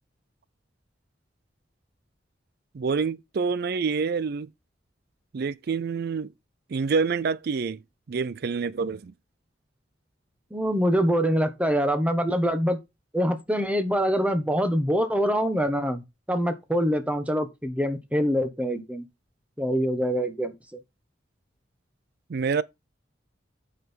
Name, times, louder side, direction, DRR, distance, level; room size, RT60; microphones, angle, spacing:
voice 1, 2.7-4.5 5.3-6.3 6.7-7.8 8.1-9.1 22.3-22.6, right 5 dB, 55° right, 0.4 m, -27 dB
voice 2, 10.5-12.8 13.1-16.0 16.3-19.0 19.6-20.8, equal, 5° right, 1.3 m, -24 dB
9.1 x 5.7 x 4.5 m
head